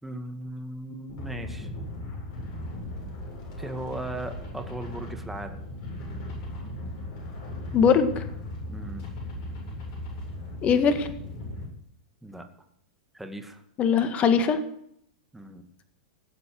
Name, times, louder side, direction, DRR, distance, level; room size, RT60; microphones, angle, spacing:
voice 1, 0.0-1.7 3.6-5.7 8.7-9.0 12.2-12.5 13.1-13.6 15.3-15.7, right 1 dB, 5° right, 5 dB, 2.1 m, -37 dB
sound 1, 1.1-11.7, left 1 dB, 50° left, 7.9 m, -37 dB
voice 2, 7.7-8.2 10.6-11.1 13.8-14.6, left 6 dB, 35° left, 9 dB, 1.8 m, -21 dB
18.5 x 7.8 x 7.8 m, 0.72 s
hypercardioid pair, 110°, 4 cm